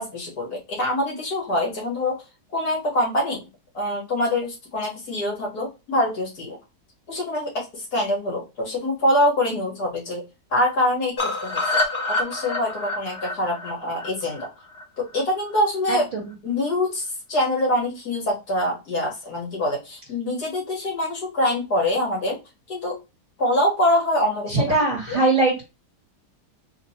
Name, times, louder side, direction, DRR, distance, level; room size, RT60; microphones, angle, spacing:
voice 1, 0.0-2.2 2.5-3.4 3.7-6.6 7.1-10.3 10.5-11.7 12.1-14.5 15.0-16.0 16.4-22.4 22.7-23.0 23.4-24.7 25.1-25.2, left 1 dB, 65° left, -2 dB, 1.9 m, -24 dB
sound 1, 11.2-15.2 15.5-15.6 15.9-16.0 16.3-16.4, left 2 dB, 45° left, 1.1 m, -27 dB
voice 2, 15.9-16.3 24.5-25.6, right 2 dB, 30° right, -2 dB, 2.2 m, -21 dB
3.6 x 3.0 x 2.7 m, 0.26 s
omnidirectional pair, 1.8 m